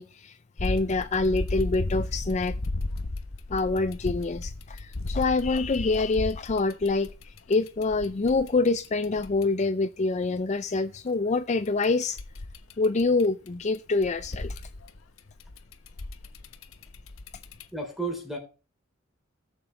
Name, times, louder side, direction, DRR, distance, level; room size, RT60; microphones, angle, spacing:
voice 1, 0.0-2.6 3.5-12.2 12.8-14.6, left 3 dB, 35° left, 0.5 m, -26 dB
sound 1, 0.6-9.4 11.7-13.5 13.7-17.6, left 2 dB, 90° left, 1.1 m, -35 dB
voice 2, 17.7-18.4, right 3 dB, ahead, 3.4 m, -32 dB
18.0 x 7.0 x 3.3 m
head